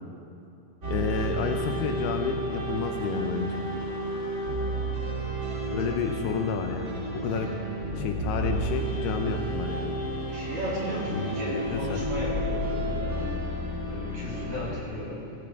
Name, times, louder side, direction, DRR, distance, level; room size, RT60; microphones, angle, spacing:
sound 1, 0.8-14.7, right 1 dB, 25° right, 1.7 m, -31 dB
voice 1, 0.9-3.6 5.7-7.5 8.0-10.0 11.1-12.0, left 6 dB, 80° left, 5 dB, 2.6 m, -31 dB
voice 2, 5.6-6.1 7.3-7.5 10.3-13.4 13.9-15.3, equal, 55° right, -6 dB, 4.3 m, -36 dB
18.5 x 15.0 x 3.6 m, 2.7 s
omnidirectional pair, 5.0 m